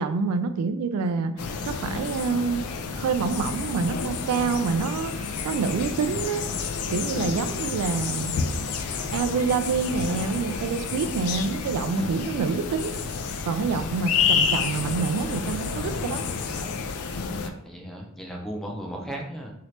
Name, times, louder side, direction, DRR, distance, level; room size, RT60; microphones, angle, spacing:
voice 1, 0.0-2.6 3.0-6.4 6.9-8.4 9.1-13.0 13.5-16.3, right 5 dB, 80° right, 14 dB, 0.3 m, -27 dB
sound 1, 1.4-17.5, left 5 dB, 70° left, 0.4 m, -29 dB
voice 2, 17.4-19.5, right 1 dB, ahead, -1 dB, 0.5 m, -36 dB
2.8 x 2.8 x 3.1 m, 0.78 s
head